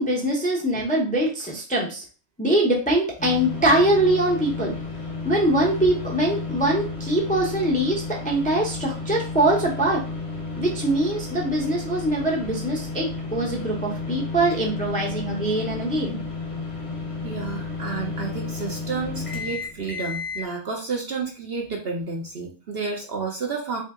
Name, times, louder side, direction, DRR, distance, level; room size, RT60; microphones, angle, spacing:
voice 1, 0.0-2.0 2.4-4.7 5.2-10.0 10.6-16.2, right 1 dB, 10° left, -3 dB, 0.6 m, -23 dB
sound 1, 3.2-20.5, left 4 dB, 25° left, 1.0 m, -32 dB
voice 2, 17.2-23.8, right 4 dB, 55° right, 0 dB, 0.8 m, -31 dB
3.4 x 2.8 x 3.6 m, 0.36 s
omnidirectional pair, 1.4 m